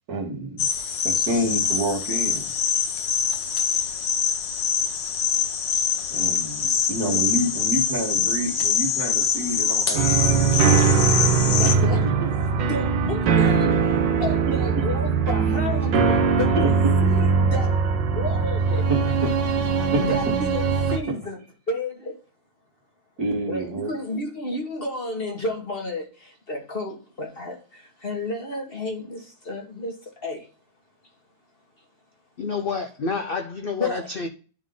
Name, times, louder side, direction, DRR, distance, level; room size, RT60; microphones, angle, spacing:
voice 1, 0.1-0.7 1.0-2.5 6.1-10.9 11.6-12.3 14.5-14.6 16.5-16.7 18.9-19.3 19.8-20.1 23.2-23.9, right 1 dB, 60° right, 2.1 m, -28 dB
sound 1, 0.6-11.8, left 7 dB, 85° left, 1.6 m, -24 dB
sound 2, 9.9-21.0, right 5 dB, 85° right, 1.6 m, -21 dB
voice 2, 11.6-12.0 12.7-16.7 17.1-18.9 20.0-21.4 21.7-22.2 23.5-30.5 33.8-34.1, left 2 dB, 35° left, 1.6 m, -32 dB
voice 3, 32.4-34.3, left 4 dB, 65° left, 0.5 m, -28 dB
11.0 x 3.7 x 3.8 m
omnidirectional pair, 1.9 m